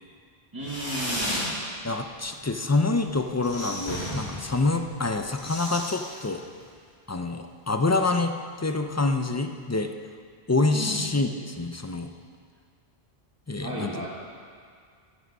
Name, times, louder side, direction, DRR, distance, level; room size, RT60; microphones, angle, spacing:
voice 1, 0.5-1.5 10.7-11.0 13.6-14.1, right 1 dB, 20° right, -10 dB, 1.9 m, -34 dB
Fireworks, 0.6-1.5 1.9-2.5 2.7-2.8 3.1-3.2 3.4-3.5 3.8-5.4, equal, 50° left, 3.3 m, -33 dB
voice 2, 1.8-6.4 7.1-9.9 10.5-12.1 13.5-14.0, left 3 dB, 25° left, 6 dB, 0.4 m, -26 dB
sound 1, 3.1-4.4 4.7-4.8 5.1-6.9 7.2-7.3, left 1 dB, 75° left, 2.1 m, -40 dB
13.5 x 9.5 x 5.4 m, 2.1 s
omnidirectional pair, 1.1 m